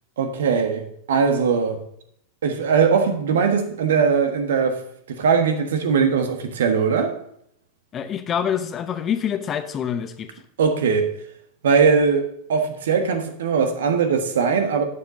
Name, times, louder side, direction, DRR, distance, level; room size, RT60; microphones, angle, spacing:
voice 1, 0.2-1.8 2.4-4.8 5.1-7.1 10.6-11.1 11.6-14.8, right 6 dB, 60° right, 6 dB, 1.4 m, -20 dB
voice 2, 7.9-10.3, left 8 dB, 25° left, 10 dB, 0.8 m, -26 dB
11.5 x 8.6 x 2.8 m, 0.70 s
figure-of-eight pair, 90°, 0 cm